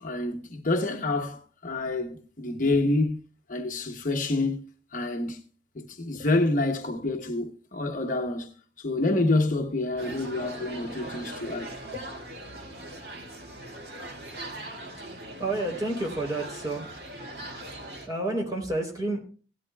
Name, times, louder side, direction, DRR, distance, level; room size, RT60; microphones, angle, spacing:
voice 1, 0.0-3.2 3.5-4.6 4.9-5.4 5.7-8.5 8.8-11.8, left 2 dB, 45° left, 0.9 m, -27 dB
sound 1, 10.0-18.1, right 1 dB, 60° right, 2.0 m, -40 dB
voice 2, 15.4-17.0 17.9-19.2, right 2 dB, 20° right, 3.5 m, -30 dB
17.0 x 11.5 x 2.3 m
head